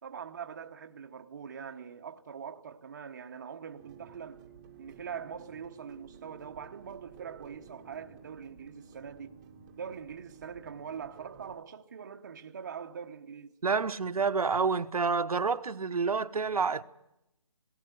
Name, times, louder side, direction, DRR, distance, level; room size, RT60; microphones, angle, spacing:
voice 1, 0.0-4.4 4.8-9.4 9.8-13.5, right 7 dB, 30° right, 1.0 m, -43 dB
sound 1, 3.7-11.6, right 7 dB, 15° right, 1.2 m, -53 dB
voice 2, 13.6-16.8, right 5 dB, 85° right, 1.1 m, -28 dB
18.5 x 18.0 x 9.5 m
hypercardioid pair, 170°, 18 cm